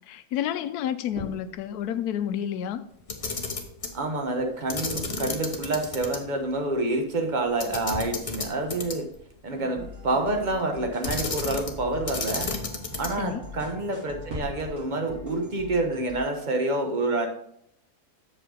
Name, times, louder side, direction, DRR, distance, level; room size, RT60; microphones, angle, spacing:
voice 1, 0.1-2.8 13.2-13.4, left 10 dB, 80° left, 12 dB, 1.1 m, -30 dB
sound 1, 1.1-14.8, equal, 80° right, 3.5 m, -45 dB
Camera, 3.0-4.0 4.7-6.2 6.5-6.6 7.6-9.2 11.0-11.8 12.1-13.3, left 3 dB, 30° left, 0.8 m, -32 dB
voice 2, 3.9-9.1 9.4-12.5 13.0-17.3, right 2 dB, 35° right, 3 dB, 1.1 m, -28 dB
sound 2, 9.5-16.2, left 1 dB, 10° right, 1.3 m, -42 dB
7.7 x 6.7 x 3.8 m, 0.72 s
omnidirectional pair, 1.6 m